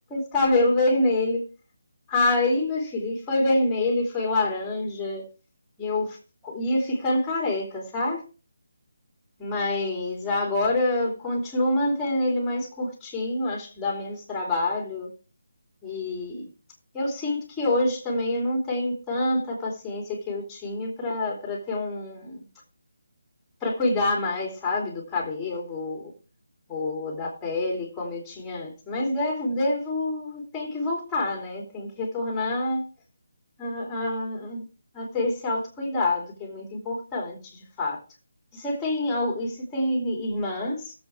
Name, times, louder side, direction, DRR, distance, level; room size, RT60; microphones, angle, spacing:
voice 1, 0.1-1.4 2.1-5.2 5.8-6.2 6.4-8.2 9.4-15.1 15.8-16.5 16.9-22.4 23.6-26.1 26.7-32.8 33.6-34.6 34.9-38.0 38.5-40.9, left 2 dB, 10° left, 3.0 m, -27 dB
17.0 x 7.7 x 3.5 m
figure-of-eight pair, 170°, 0 cm